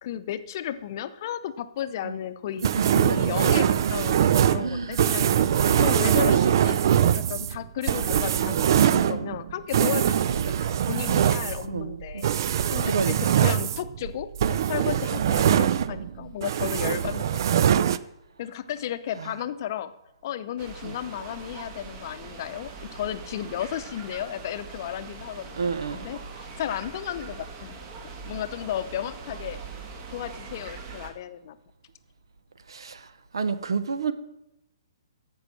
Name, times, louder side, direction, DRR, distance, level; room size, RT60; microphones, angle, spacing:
voice 1, 0.0-5.5 5.8-6.8 7.1-10.2 10.5-17.4 18.4-19.9 20.2-25.5 25.9-27.8 28.2-29.6 30.1-31.6, left 10 dB, 45° left, 0.7 m, -34 dB
sound 1, 2.6-16.1 16.4-18.0, right 9 dB, 50° right, 0.4 m, -23 dB
voice 2, 4.6-5.1 10.3-10.6 11.7-12.0 12.8-13.4 19.2-19.3 20.8-20.9 25.6-26.0 32.7-33.1 33.3-34.1, right 5 dB, 70° right, 1.0 m, -30 dB
sound 2, 20.6-31.1, right 4 dB, 35° right, 1.7 m, -42 dB
14.0 x 5.5 x 6.3 m
figure-of-eight pair, 125°, 3 cm